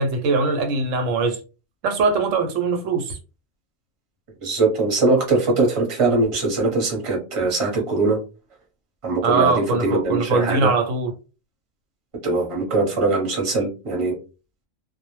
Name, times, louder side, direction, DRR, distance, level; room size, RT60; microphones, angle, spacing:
voice 1, 0.0-1.4 1.8-3.2 9.2-11.1, right 3 dB, 80° right, 0.9 m, -21 dB
voice 2, 4.4-8.2 9.0-10.7 12.2-14.1, right 3 dB, 30° right, 0.8 m, -21 dB
2.2 x 2.0 x 3.0 m
omnidirectional pair, 1.3 m